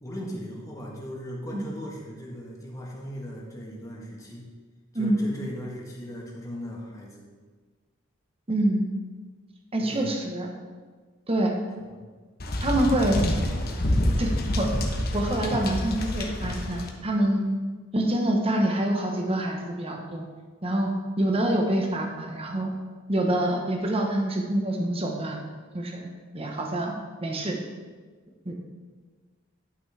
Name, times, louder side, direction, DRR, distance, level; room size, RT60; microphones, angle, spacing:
voice 1, 0.0-4.4 4.9-7.3 9.8-10.1, equal, 15° left, -3 dB, 1.4 m, -38 dB
voice 2, 8.5-8.9 9.7-10.5 11.3-11.5 12.6-13.3 14.2-14.9 15.1-17.5 17.9-20.3 20.6-22.7 23.1-25.4 25.7-26.1 26.3-26.9 27.2-27.6 28.4-28.5, right 1 dB, 30° right, 2 dB, 1.0 m, -26 dB
sound 1, 12.4-16.9, left 1 dB, 50° left, 1.0 m, -27 dB
11.0 x 6.1 x 3.4 m, 1.5 s
head